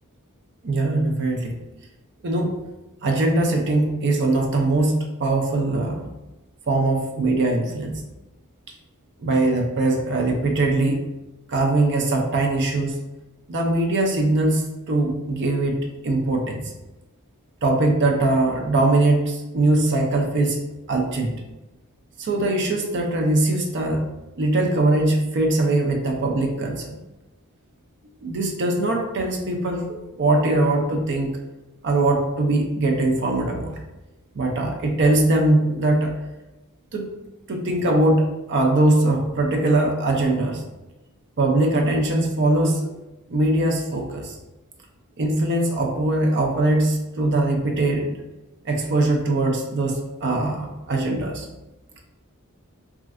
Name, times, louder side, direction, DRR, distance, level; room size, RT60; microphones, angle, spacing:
voice 1, 0.6-1.5 2.2-2.5 3.0-6.1 6.7-8.0 9.2-11.0 11.5-13.0 13.5-15.8 16.0-16.7 17.6-20.6 20.9-21.3 22.2-24.1 24.4-27.0 28.2-29.9 30.2-31.4 31.8-33.7 34.3-36.1 36.9-37.1 37.5-40.6 41.4-42.9 43.3-44.3 45.2-48.1 48.6-51.5, right 2 dB, 55° right, 2 dB, 0.5 m, -21 dB
3.2 x 2.5 x 2.5 m, 1.0 s
head